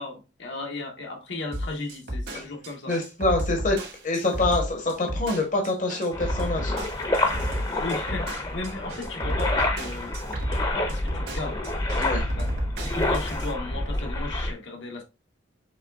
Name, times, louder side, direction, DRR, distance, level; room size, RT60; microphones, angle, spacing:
voice 1, 0.0-2.9 7.8-10.2 10.7-11.6 12.3-12.5 12.9-15.0, left 2 dB, 75° left, 1.2 m, -35 dB
sound 1, 1.5-13.5, equal, 65° right, 1.8 m, -31 dB
voice 2, 2.9-3.8 4.0-6.7 12.0-12.3, left 2 dB, 45° left, 1.0 m, -25 dB
sound 2, 6.1-14.5, left 2 dB, 20° left, 0.8 m, -28 dB
6.4 x 3.3 x 2.3 m
head